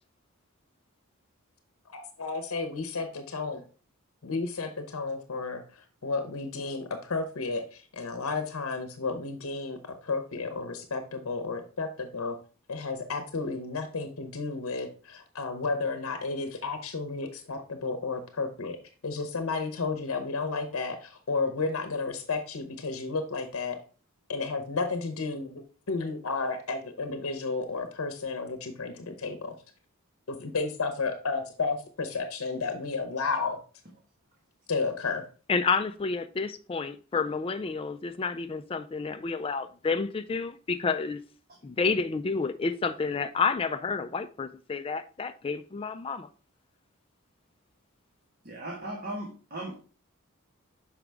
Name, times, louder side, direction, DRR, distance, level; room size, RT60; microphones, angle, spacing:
voice 1, 1.9-3.6 4.2-12.4 12.7-18.8 19.0-23.8 24.3-29.5 30.3-33.6 34.7-35.2, left 4 dB, 80° left, 0.8 m, -32 dB
voice 2, 35.5-41.2 41.6-46.3, left 4 dB, 25° left, 0.3 m, -30 dB
voice 3, 48.4-49.7, right 1 dB, 45° right, 1.3 m, -37 dB
6.2 x 4.9 x 3.4 m
head